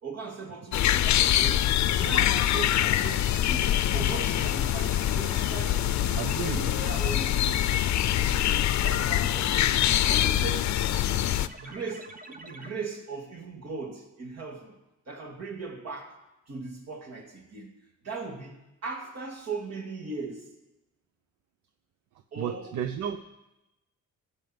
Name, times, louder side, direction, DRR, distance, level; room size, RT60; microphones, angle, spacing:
voice 1, 0.0-6.2 6.4-7.5 8.0-10.8 11.6-14.8 15.1-16.2 16.5-17.7 18.0-20.5 22.3-22.8, right 4 dB, 55° right, 2 dB, 2.7 m, -38 dB
sound 1, 0.7-11.5, left 12 dB, 65° left, 0.6 m, -24 dB
sound 2, 2.9-12.7, right 2 dB, 25° right, 1.2 m, -46 dB
voice 2, 6.1-6.7 7.4-7.6 22.4-23.2, right 9 dB, 75° right, 8 dB, 0.8 m, -33 dB
15.5 x 5.6 x 7.8 m, 0.95 s
cardioid pair, 90°, 30 cm